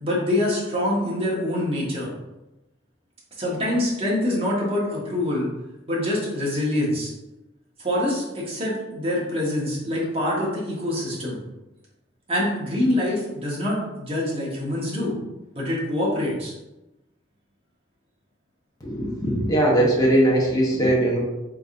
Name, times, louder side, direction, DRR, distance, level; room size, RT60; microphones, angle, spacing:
voice 1, 0.0-2.1 3.4-5.5 5.9-7.1 7.8-11.4 12.3-15.1 15.5-16.5, left 1 dB, 30° right, -5 dB, 1.2 m, -25 dB
voice 2, 18.8-21.2, right 1 dB, 20° left, -4 dB, 0.9 m, -20 dB
4.0 x 3.5 x 2.5 m, 0.98 s
head